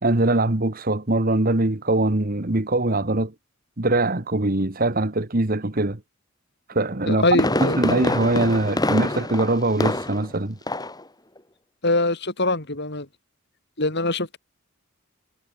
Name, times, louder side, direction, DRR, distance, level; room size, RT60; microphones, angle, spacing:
voice 1, 0.0-3.3 3.8-6.0 6.7-10.6, right 2 dB, 45° right, 1.6 m, -22 dB
Fireworks, 6.9-10.4 10.7-11.0 11.4-11.5, left 1 dB, 20° left, 4.5 m, -25 dB
voice 2, 7.1-7.8 11.8-13.1 13.8-14.4, left 2 dB, 55° left, 3.7 m, -23 dB
head